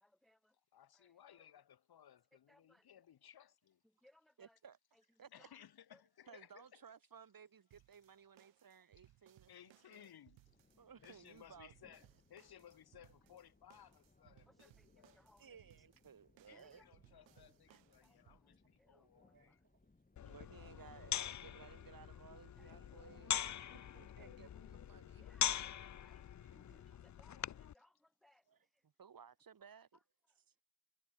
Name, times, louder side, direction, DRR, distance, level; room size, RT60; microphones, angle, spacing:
voice 1, 0.0-0.5 0.9-1.1 2.5-2.8 4.0-4.6 5.4-5.5 14.5-15.5 16.5-16.9 18.0-18.2 18.4-19.6 21.7-21.8 22.6-22.7 24.0-24.3 25.2-28.4, left 1 dB, ahead, 0.6 m, -70 dB
voice 2, 0.7-3.8 5.3-6.8 9.5-10.5 11.0-15.2 16.5-19.6 20.1-21.1 24.6-24.7, left 10 dB, 55° left, 1.4 m, -62 dB
voice 3, 4.4-4.8 5.2-5.5 6.3-10.1 10.8-11.7 15.4-16.8 17.7-17.8 18.9-19.8 20.2-23.6 23.9-25.2 26.4-27.0 27.5-27.7 28.5-30.0 30.3-30.4, right 7 dB, 50° right, 4.5 m, -60 dB
sound 1, 7.7-18.4, right 15 dB, 85° right, 1.5 m, -69 dB
sound 2, 10.4-24.8, left 2 dB, 20° left, 7.3 m, -71 dB
sound 3, 20.2-27.7, left 10 dB, 40° left, 0.7 m, -42 dB
cardioid pair, 75°, 44 cm